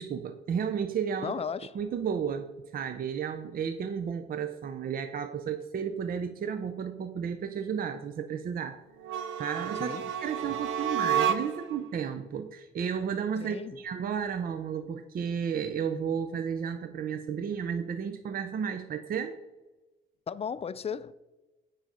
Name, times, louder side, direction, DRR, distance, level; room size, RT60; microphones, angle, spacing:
voice 1, 0.0-1.3 1.7-8.8 9.4-19.4, right 7 dB, 45° right, 0.6 m, -33 dB
voice 2, 1.2-1.8 9.8-10.1 13.4-13.8 20.3-21.1, left 7 dB, 30° left, 0.4 m, -35 dB
sound 1, 9.0-11.8, right 8 dB, 80° right, 0.7 m, -30 dB
9.1 x 3.9 x 5.4 m
cardioid pair, 90°, 20 cm